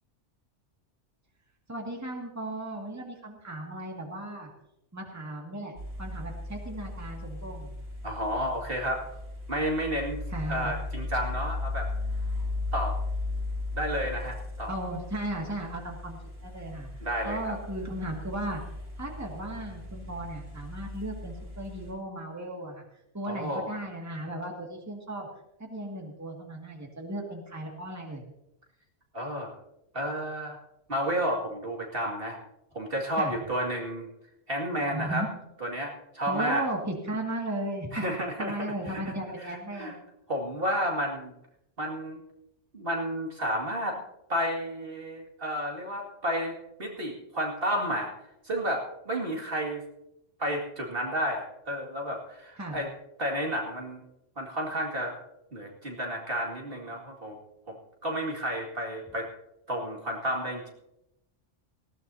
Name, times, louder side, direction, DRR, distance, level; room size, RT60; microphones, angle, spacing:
voice 1, 1.7-4.5 4.9-5.7 6.0-7.7 10.3-10.7 14.7-16.9 17.2-18.6 19.0-22.8 23.1-25.3 25.6-28.2 33.2-33.3 34.9-35.3 36.3-37.9 38.4-40.0 52.6-52.8, right 1 dB, 15° right, 0 dB, 2.1 m, -36 dB
sound 1, 5.8-21.9, left 2 dB, 90° right, 6.6 m, -36 dB
voice 2, 8.0-9.0 9.5-10.2 10.5-11.9 12.7-13.0 13.7-14.7 17.0-17.6 23.3-23.8 29.1-29.5 29.9-30.6 30.9-32.4 32.7-34.1 34.5-35.3 35.6-36.7 37.9-39.0 39.4-39.9 40.3-41.3 41.8-42.2 42.7-44.0 44.3-48.1 48.4-49.8 50.4-52.9 53.2-54.0 54.4-55.2 55.5-57.4 57.7-57.8 58.0-59.3 59.7-60.7, equal, 50° right, 0 dB, 2.5 m, -31 dB
19.0 x 16.5 x 2.8 m, 0.83 s
omnidirectional pair, 1.3 m